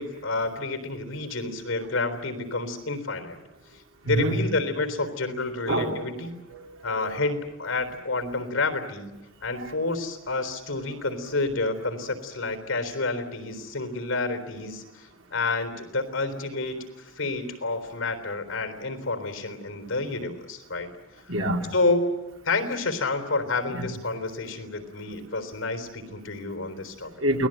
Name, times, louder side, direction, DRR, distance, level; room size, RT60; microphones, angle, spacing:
voice 1, 0.0-3.4 3.7-6.3 6.8-16.8 17.2-20.9 21.7-22.2 22.4-27.1, left 3 dB, 90° left, 8 dB, 3.8 m, -29 dB
voice 2, 5.7-6.0 6.5-7.1 9.6-9.7 21.3-21.7 23.7-23.9 27.2-27.5, right 1 dB, 85° right, 2 dB, 4.0 m, -26 dB
29.0 x 20.0 x 9.1 m, 1.0 s
head